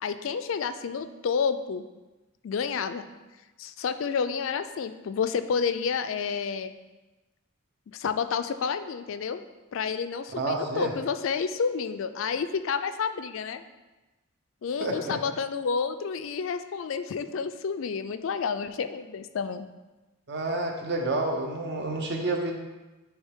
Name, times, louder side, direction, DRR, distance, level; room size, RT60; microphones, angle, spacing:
voice 1, 0.0-1.8 2.4-3.1 3.6-6.7 7.9-9.4 9.7-13.6 14.6-19.7, left 6 dB, 65° left, 10 dB, 0.4 m, -30 dB
voice 2, 10.4-10.9 14.8-15.2 20.3-22.5, right 2 dB, 55° right, 2 dB, 0.9 m, -29 dB
9.8 x 3.3 x 3.6 m, 1.1 s
head